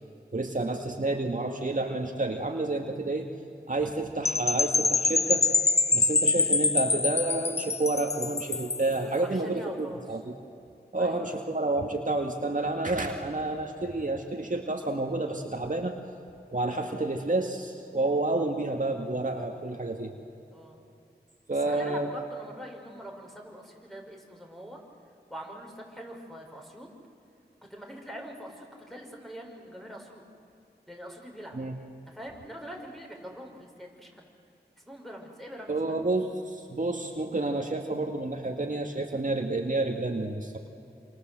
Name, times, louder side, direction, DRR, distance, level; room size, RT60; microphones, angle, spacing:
voice 1, 0.3-3.3 3.7-5.4 5.9-10.3 10.9-15.9 16.5-20.1 21.5-22.1 31.5-31.8 35.7-40.6, right 2 dB, 50° right, 3 dB, 2.1 m, -29 dB
Percussion / Wind chime, 4.2-8.9, left 4 dB, 40° left, 0.5 m, -25 dB
voice 2, 9.2-10.0 11.0-11.4 20.4-20.8 21.6-24.8 25.3-26.9 27.7-30.2 30.9-31.6 32.1-34.3 34.8-36.0, equal, ahead, 1 dB, 5.8 m, -43 dB
27.0 x 27.0 x 8.0 m, 2.8 s
wide cardioid pair, 45°, 18 cm